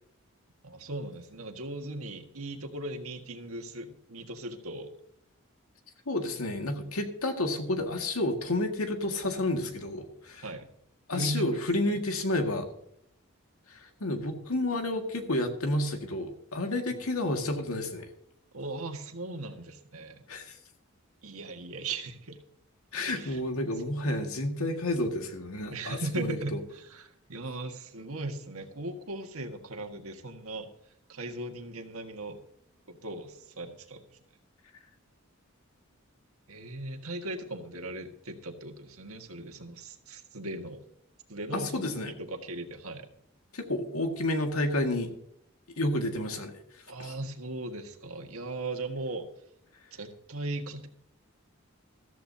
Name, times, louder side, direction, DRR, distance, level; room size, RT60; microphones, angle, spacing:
voice 1, 0.6-4.9 10.4-10.7 11.1-11.6 11.9-12.0 18.5-20.2 21.2-22.4 23.1-23.4 25.7-30.7 31.1-32.4 32.9-34.2 36.5-40.8 41.3-41.8 42.2-43.1 46.9-49.3 49.9-50.9, right 2 dB, 90° right, 5 dB, 1.7 m, -38 dB
voice 2, 6.1-10.5 11.1-12.7 13.7-18.1 20.3-20.6 22.9-26.6 41.5-42.1 43.5-45.1 45.8-46.5 47.0-47.1, left 1 dB, 90° left, 4 dB, 2.0 m, -30 dB
14.0 x 13.5 x 2.8 m, 0.72 s
head